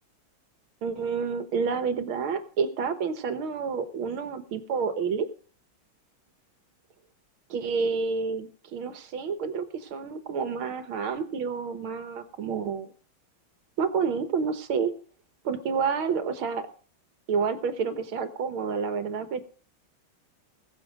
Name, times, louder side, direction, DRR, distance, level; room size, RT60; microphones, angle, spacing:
voice 1, 0.8-5.3 7.5-12.9 13.8-14.9 15.4-16.7 17.3-19.4, right 5 dB, 80° right, 10 dB, 2.0 m, -29 dB
21.0 x 7.1 x 5.0 m, 0.42 s
omnidirectional pair, 2.2 m